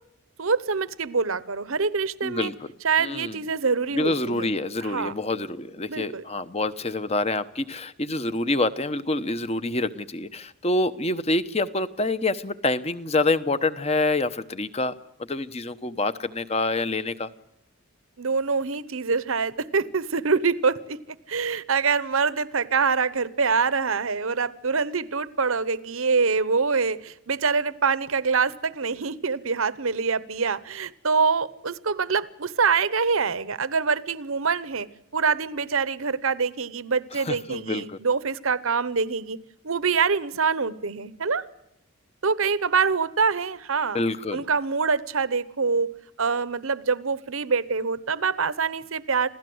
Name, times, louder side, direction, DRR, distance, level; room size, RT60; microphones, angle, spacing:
voice 1, 0.4-2.5 2.8-4.5 4.8-5.1 5.9-6.2 18.2-21.0 21.3-34.9 35.1-39.4 39.6-41.4 42.2-44.0 44.3-45.9 46.2-49.3, right 5 dB, 70° right, 16 dB, 0.9 m, -25 dB
voice 2, 2.2-2.7 3.0-3.4 3.9-14.9 15.2-17.3 37.1-38.0 43.9-44.4, left 2 dB, 30° left, 13 dB, 0.9 m, -27 dB
27.5 x 16.5 x 7.9 m, 0.84 s
head